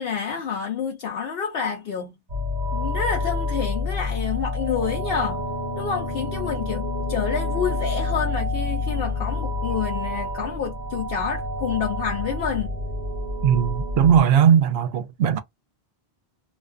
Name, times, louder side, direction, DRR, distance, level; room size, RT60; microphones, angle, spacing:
voice 1, 0.0-2.1 2.7-5.4 5.8-12.7, left 7 dB, 70° left, 0.8 m, -28 dB
sound 1, 2.3-14.2, left 2 dB, 45° right, 0.9 m, -28 dB
voice 2, 13.4-15.4, right 8 dB, 75° right, 0.8 m, -18 dB
2.4 x 2.2 x 2.4 m
omnidirectional pair, 1.1 m